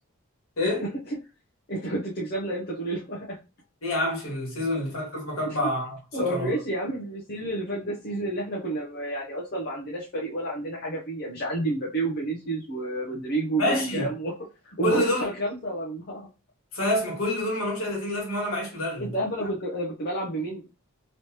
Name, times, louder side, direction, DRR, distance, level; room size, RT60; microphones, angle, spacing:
voice 1, 1.7-3.4 5.5-5.6 6.1-14.3 14.6-16.3 19.0-20.6, right 1 dB, 45° left, 0.7 m, -30 dB
voice 2, 3.8-6.5 13.6-14.1 14.8-15.3 16.7-19.1, left 1 dB, 70° left, 1.6 m, -27 dB
3.1 x 2.9 x 2.9 m
head